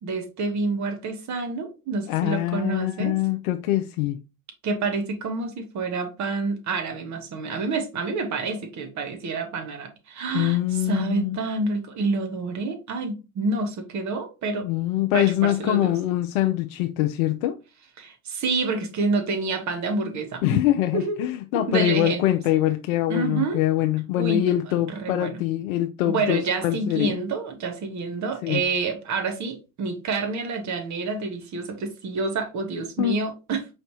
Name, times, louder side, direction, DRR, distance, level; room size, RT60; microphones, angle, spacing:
voice 1, 0.0-3.2 4.6-10.6 10.9-14.7 15.1-15.9 18.0-20.6 20.9-21.2 21.7-22.2 23.1-23.6 24.1-24.5 24.9-25.4 26.1-33.7, right 3 dB, 40° right, 1.2 m, -28 dB
voice 2, 2.1-4.2 10.3-11.4 14.6-17.6 20.4-27.1 28.4-28.6 33.0-33.2, left 14 dB, 70° left, 0.5 m, -24 dB
4.8 x 3.3 x 2.8 m
hypercardioid pair, 75°, 44 cm